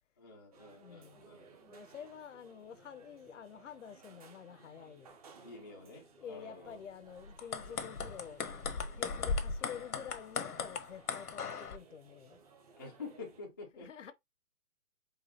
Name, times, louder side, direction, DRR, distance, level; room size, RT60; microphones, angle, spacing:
voice 1, 0.2-1.5 5.3-6.8 12.8-13.9, left 4 dB, 15° left, 0.5 m, -49 dB
sound 1, 0.5-13.4, right 5 dB, 25° right, 0.8 m, -60 dB
voice 2, 0.8-1.3 1.6-5.2 5.7-8.5 8.9-12.4 13.7-14.1, left 8 dB, 55° left, 0.7 m, -49 dB
sound 2, 7.3-11.8, left 5 dB, 85° left, 1.1 m, -37 dB
5.0 x 2.3 x 4.2 m
hypercardioid pair, 150°, 44 cm